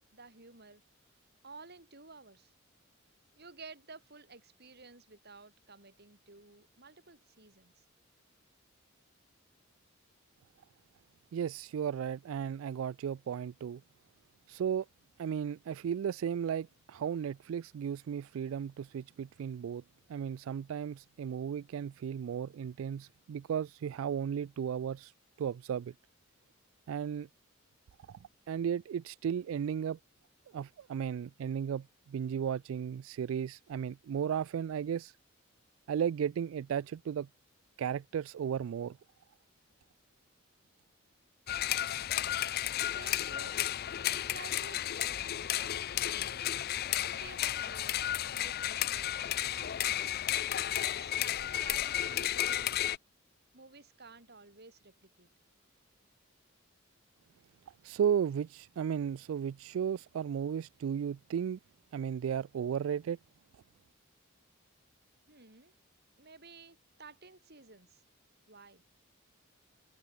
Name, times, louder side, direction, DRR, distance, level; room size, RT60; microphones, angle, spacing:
voice 1, 0.1-0.8 1.4-2.5 3.3-7.8 42.9-43.6 44.1-45.7 46.1-46.5 47.0-50.2 50.8-52.7 53.5-55.3 65.3-65.7 66.2-68.0 68.5-68.8, right 4 dB, 50° right, 5.1 m, -53 dB
voice 2, 11.3-13.8 14.5-14.9 15.2-19.8 20.1-25.1 25.4-25.9 26.9-27.3 28.1-28.2 28.5-30.0 30.5-35.1 35.9-37.3 37.8-39.0 57.8-61.6 61.9-63.2, right 8 dB, 75° right, 0.3 m, -35 dB
sound 1, 41.5-53.0, left 12 dB, 50° left, 0.5 m, -33 dB
head